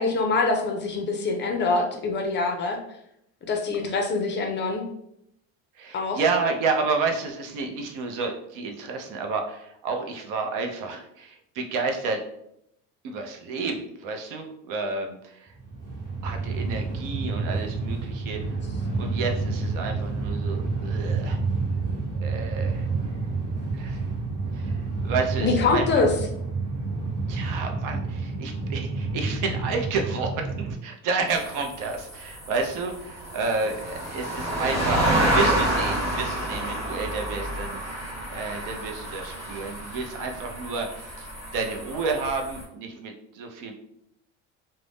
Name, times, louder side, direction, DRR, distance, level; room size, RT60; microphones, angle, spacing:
voice 1, 0.0-2.8 3.5-4.8 5.9-6.2 25.4-26.1, left 3 dB, 35° left, 3 dB, 0.4 m, -24 dB
voice 2, 5.8-12.2 13.0-15.5 16.2-18.4 19.0-21.4 22.1-23.3 23.7-24.1 24.5-26.0 27.3-37.8 38.3-40.9 41.2-41.3 41.5-43.7, right 4 dB, 65° right, 4 dB, 0.6 m, -30 dB
Train, 15.5-30.7, right 3 dB, 35° right, 1.2 m, -29 dB
sound 1, 31.3-42.6, right 1 dB, 10° right, 1.2 m, -29 dB
2.5 x 2.1 x 3.3 m, 0.76 s
cardioid pair, 120°, 35 cm